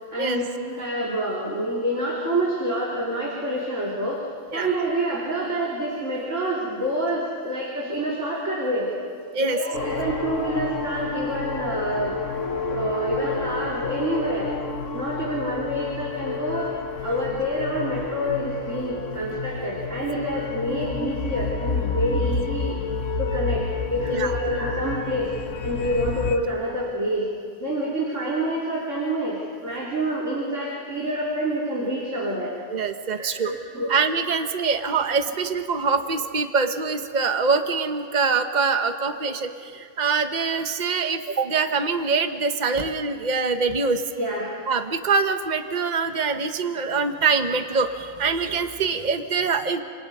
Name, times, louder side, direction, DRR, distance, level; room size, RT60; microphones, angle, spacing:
voice 1, 0.1-4.2 4.5-8.9 9.4-12.2 12.6-14.5 14.9-16.7 17.0-22.8 23.2-25.3 25.6-27.3 27.6-32.5 33.2-33.9 44.2-44.5, right 1 dB, 90° right, -4 dB, 3.7 m, -27 dB
sound 1, 9.7-26.4, left 4 dB, 90° left, 1.6 m, -30 dB
voice 2, 32.7-33.5 33.9-44.0 44.7-49.8, right 4 dB, 40° right, 7 dB, 1.2 m, -24 dB
30.0 x 27.5 x 5.6 m, 2.2 s
omnidirectional pair, 1.2 m